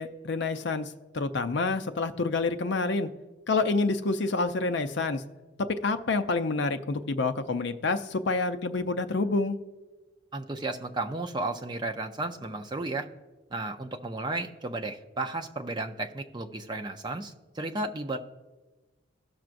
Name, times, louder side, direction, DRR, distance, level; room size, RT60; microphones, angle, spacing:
voice 1, 0.0-3.1 3.5-5.2 5.7-9.6, left 3 dB, 55° left, 9 dB, 0.5 m, -28 dB
voice 2, 10.3-13.1 13.5-18.2, right 2 dB, 20° right, 4 dB, 0.5 m, -33 dB
16.5 x 6.0 x 2.5 m, 1.2 s
head